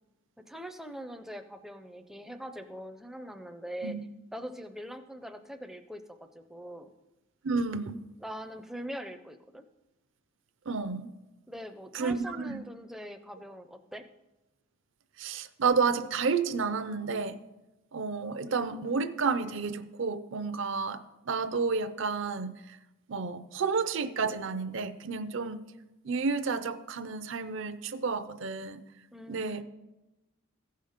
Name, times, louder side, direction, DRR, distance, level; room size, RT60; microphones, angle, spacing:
voice 1, 0.5-4.0 4.3-6.9 8.2-9.6 11.5-14.0 29.1-29.6, equal, ahead, 7 dB, 0.4 m, -42 dB
voice 2, 7.4-8.0 10.7-11.1 11.9-12.6 15.2-17.4 17.9-21.0 21.3-22.8 23.1-25.6 26.0-28.8 29.3-29.6, right 4 dB, 60° right, 12 dB, 0.5 m, -31 dB
15.0 x 5.6 x 5.0 m, 1.0 s
head